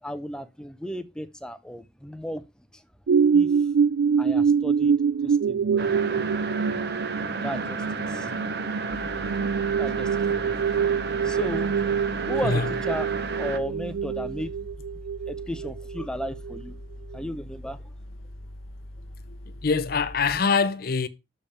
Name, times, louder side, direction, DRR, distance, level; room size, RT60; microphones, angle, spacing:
voice 1, 0.0-2.5 2.7-2.8 3.3-3.7 4.2-5.0 5.2-5.9 7.0-8.3 9.8-10.6 11.2-14.5 15.3-16.8 17.1-17.9, equal, 5° left, 0.5 m, -35 dB
sound 1, 3.1-16.6 17.1-17.2, right 6 dB, 70° right, 0.4 m, -25 dB
sound 2, 5.8-13.6, right 3 dB, 50° right, 0.9 m, -32 dB
sound 3, 8.9-20.4, left 1 dB, 80° left, 1.1 m, -42 dB
voice 2, 19.6-21.1, left 5 dB, 45° left, 0.6 m, -24 dB
6.9 x 5.2 x 5.6 m
head